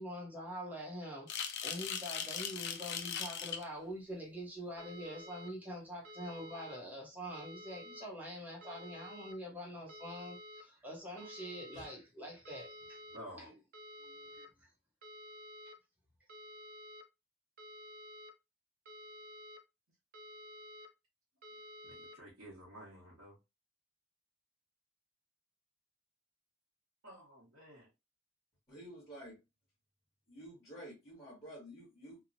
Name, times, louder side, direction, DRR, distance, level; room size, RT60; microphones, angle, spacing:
voice 1, 0.0-13.6 14.0-14.7, equal, 10° right, 0.7 m, -45 dB
sound 1, 1.3-3.7, left 8 dB, 55° left, 0.3 m, -39 dB
sound 2, 4.8-5.5 6.0-6.8 7.3-8.1 8.6-9.3 9.9-10.6 11.2-11.9 12.4-13.2 13.7-14.5 15.0-15.7 16.3-17.0 17.6-18.3 18.8-19.6 20.1-20.9 21.4-22.1, equal, 45° right, 0.5 m, -51 dB
voice 2, 13.1-13.5 21.8-23.3 27.0-27.9, equal, 80° right, 1.0 m, -52 dB
voice 3, 28.7-29.4 30.3-32.2, equal, 20° left, 1.1 m, -50 dB
2.9 x 2.0 x 2.5 m
head